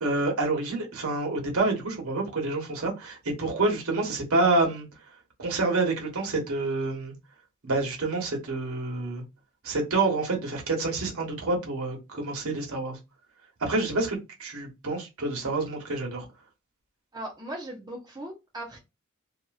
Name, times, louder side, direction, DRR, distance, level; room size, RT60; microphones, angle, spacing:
voice 1, 0.0-4.9 5.4-7.1 7.6-9.2 9.6-13.0 13.6-16.2, right 3 dB, 75° right, 1.2 m, -28 dB
voice 2, 17.1-18.8, right 1 dB, 20° right, 0.9 m, -38 dB
2.8 x 2.6 x 2.4 m
head